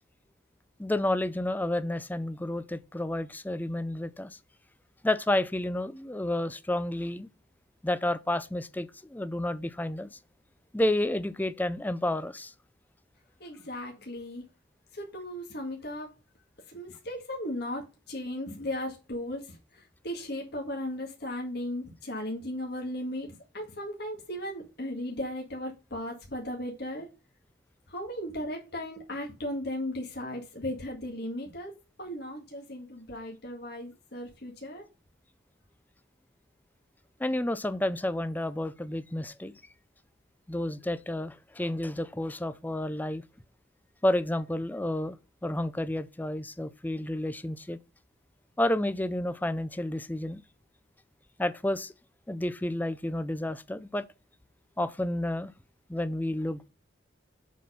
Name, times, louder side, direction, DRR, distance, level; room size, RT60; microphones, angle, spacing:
voice 1, 0.8-4.4 5.0-7.3 7.8-10.2 10.7-12.5 37.2-39.5 40.5-43.2 44.0-47.8 48.6-50.4 51.4-51.9 52.3-54.1 54.8-55.5 55.9-56.7, left 1 dB, 10° left, 0.5 m, -30 dB
voice 2, 13.4-14.4 14.9-16.1 16.7-27.1 27.9-31.7 32.0-34.9, left 1 dB, 60° left, 1.8 m, -36 dB
7.4 x 4.2 x 5.5 m
head